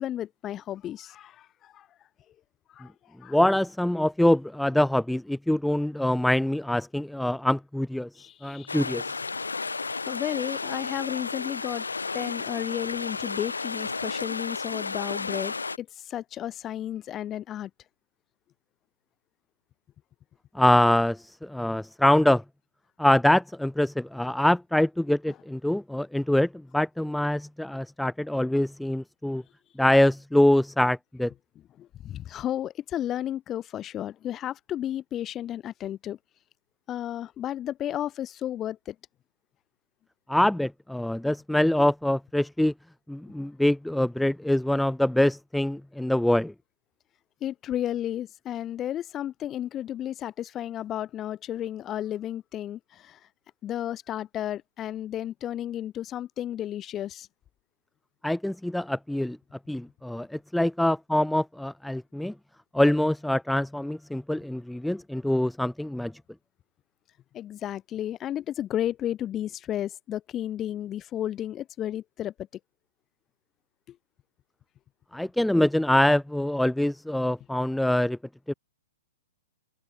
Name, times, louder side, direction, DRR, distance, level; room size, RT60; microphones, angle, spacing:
voice 1, 0.0-1.9 2.7-3.4 8.2-8.8 10.1-11.9 12.1-17.7 29.3-29.4 31.8-36.2 36.9-39.0 47.4-53.2 53.6-57.3 67.3-72.3 73.9-74.0, left 11 dB, 25° left, 5.3 m, -33 dB
voice 2, 3.3-9.1 20.5-22.4 23.0-29.4 29.8-31.3 40.3-42.7 43.1-46.5 58.2-59.4 59.7-62.3 62.7-66.1 75.1-78.2 78.5-78.6, left 1 dB, ahead, 0.8 m, -24 dB
sound 1, 8.7-15.8, left 4 dB, 75° left, 1.2 m, -33 dB
figure-of-eight pair, 110°, 0 cm